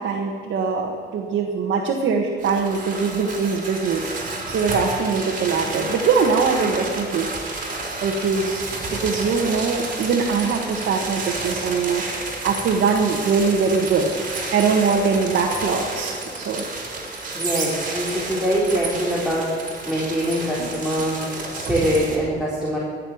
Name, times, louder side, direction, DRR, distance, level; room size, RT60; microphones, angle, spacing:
voice 1, 0.0-7.3 8.0-12.0 12.4-14.1 14.5-16.6 20.6-20.7, right 5 dB, 70° right, 1 dB, 1.6 m, -22 dB
sound 1, 2.4-22.2, right 2 dB, 40° right, 3.6 m, -30 dB
voice 2, 17.3-21.2 21.5-22.8, equal, ahead, -6 dB, 3.6 m, -23 dB
15.5 x 6.7 x 9.4 m, 2.1 s
cardioid pair, 90°, 20 cm